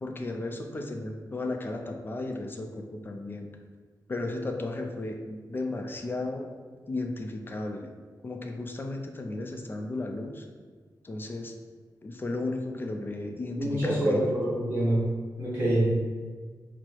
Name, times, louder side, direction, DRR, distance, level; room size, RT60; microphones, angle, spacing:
voice 1, 0.0-3.5 4.1-6.5 6.9-7.9 8.2-10.4 11.0-11.5 12.0-14.2, left 2 dB, 30° left, 3 dB, 0.4 m, -34 dB
voice 2, 13.6-15.0 15.4-15.8, right 1 dB, 25° right, -11 dB, 1.3 m, -25 dB
4.5 x 2.0 x 4.5 m, 1.5 s
wide cardioid pair, 140°, 7 cm